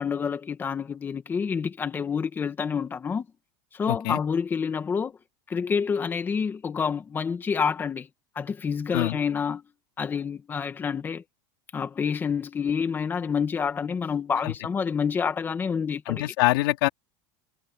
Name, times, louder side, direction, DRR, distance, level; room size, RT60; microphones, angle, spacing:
voice 1, 0.0-3.2 3.7-5.2 5.5-8.1 8.3-9.6 10.0-11.2 11.7-16.2, left 6 dB, 15° left, 1.8 m, -28 dB
voice 2, 3.9-4.2 8.9-9.2 14.4-14.5 16.1-16.9, left 19 dB, 75° left, 2.5 m, -24 dB
supercardioid pair, 160°, 12 cm